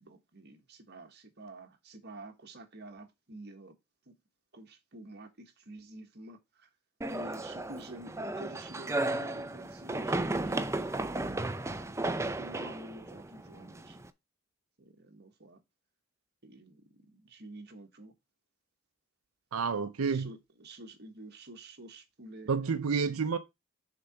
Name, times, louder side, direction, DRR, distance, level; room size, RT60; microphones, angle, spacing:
voice 1, 0.0-3.7 4.1-4.2 4.5-6.7 7.1-10.8 12.2-14.0 14.8-15.6 16.4-18.1 20.1-22.5, right 1 dB, 50° right, 1.4 m, -49 dB
sound 1, 7.0-14.1, right 2 dB, 15° right, 0.5 m, -34 dB
voice 2, 19.5-20.3 22.5-23.4, right 5 dB, 90° right, 0.5 m, -29 dB
6.7 x 3.9 x 5.7 m
head